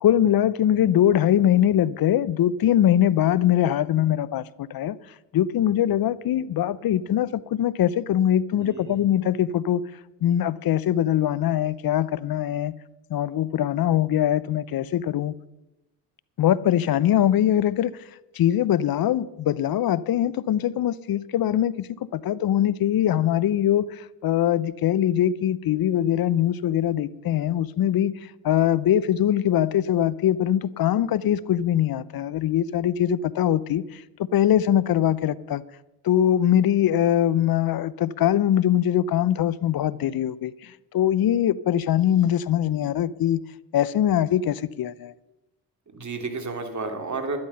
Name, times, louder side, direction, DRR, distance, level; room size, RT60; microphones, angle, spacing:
voice 1, 0.0-5.0 5.3-9.8 10.2-12.8 13.1-15.4 16.4-17.9 18.3-28.2 28.4-34.0 34.3-35.6 36.0-43.4 43.7-45.1, left 11 dB, 55° left, 0.7 m, -22 dB
voice 2, 8.6-9.1 45.9-47.4, right 3 dB, 40° right, 3.0 m, -32 dB
12.0 x 11.5 x 5.8 m
hypercardioid pair, 50°, 43 cm